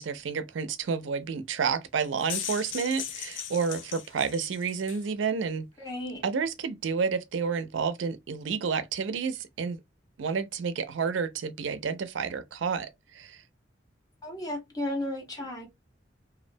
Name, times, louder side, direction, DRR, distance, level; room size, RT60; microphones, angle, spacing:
voice 1, 0.0-5.6 6.2-9.8 10.2-13.4, right 5 dB, 90° right, 0.4 m, -30 dB
sound 1, 2.0-5.1, left 9 dB, 90° left, 0.5 m, -38 dB
voice 2, 5.8-6.2 14.2-15.7, left 1 dB, 20° left, 0.9 m, -34 dB
2.4 x 2.1 x 2.5 m
head